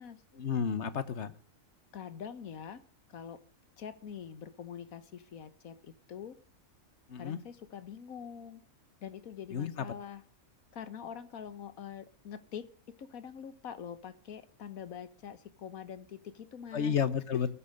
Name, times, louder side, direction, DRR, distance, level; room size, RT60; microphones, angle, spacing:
voice 1, 0.3-1.3 7.1-7.4 9.5-9.9 16.7-17.5, left 7 dB, 55° left, 14 dB, 1.4 m, -31 dB
voice 2, 1.9-2.8 3.1-3.4 3.8-6.4 7.2-8.6 9.0-10.2 10.7-16.9, left 8 dB, 85° left, 13 dB, 1.6 m, -44 dB
19.0 x 8.6 x 6.5 m, 0.41 s
omnidirectional pair, 1.4 m